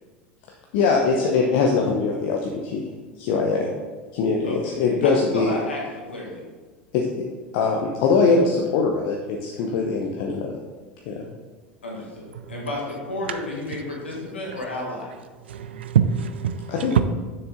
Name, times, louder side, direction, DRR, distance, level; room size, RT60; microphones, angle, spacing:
voice 1, 0.7-2.8 3.2-3.7 4.1-5.5 6.9-7.2 7.5-10.5 11.1-11.2 16.7-17.0, left 4 dB, 60° left, 0 dB, 0.9 m, -22 dB
voice 2, 5.0-6.4 11.8-15.1, left 1 dB, 85° left, -3 dB, 1.5 m, -32 dB
voice 3, 15.5-17.0, right 8 dB, 75° right, 10 dB, 0.3 m, -23 dB
7.0 x 6.5 x 3.8 m, 1.3 s
figure-of-eight pair, 75°, 6 cm